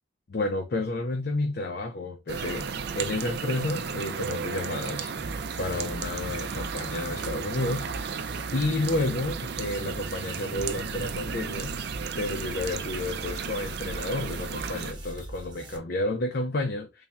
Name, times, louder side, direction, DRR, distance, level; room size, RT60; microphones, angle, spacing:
voice 1, 0.3-2.7 2.9-8.2 8.5-11.8 12.2-17.1, left 2 dB, 55° left, 0.6 m, -31 dB
sound 1, 2.3-14.9, right 6 dB, 60° right, 0.4 m, -34 dB
sound 2, 5.2-15.8, right 1 dB, 25° right, 0.8 m, -41 dB
3.4 x 2.3 x 4.0 m
head